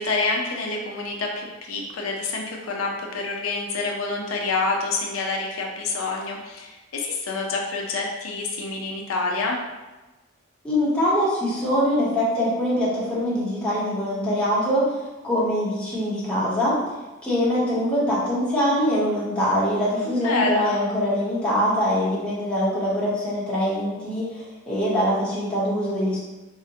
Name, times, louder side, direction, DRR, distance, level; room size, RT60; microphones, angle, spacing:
voice 1, 0.0-9.6 20.1-20.8, left 3 dB, 85° left, 0 dB, 0.5 m, -27 dB
voice 2, 10.6-16.8 17.2-26.2, equal, 5° left, -9 dB, 0.8 m, -23 dB
3.8 x 2.1 x 2.7 m, 1.1 s
head